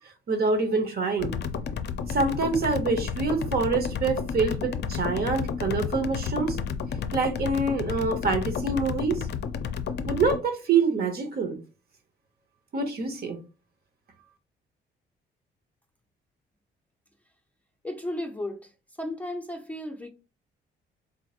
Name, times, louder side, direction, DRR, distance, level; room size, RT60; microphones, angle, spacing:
voice 1, 0.3-1.3 2.1-6.6 7.1-9.3 10.1-11.6 12.7-13.4, right 4 dB, 50° right, 1.0 m, -26 dB
sound 1, 1.2-10.4, left 6 dB, 60° left, 0.5 m, -31 dB
voice 2, 17.8-18.7 19.0-20.1, left 1 dB, 5° left, 0.6 m, -34 dB
4.0 x 2.9 x 2.4 m
cardioid pair, 90°, 20 cm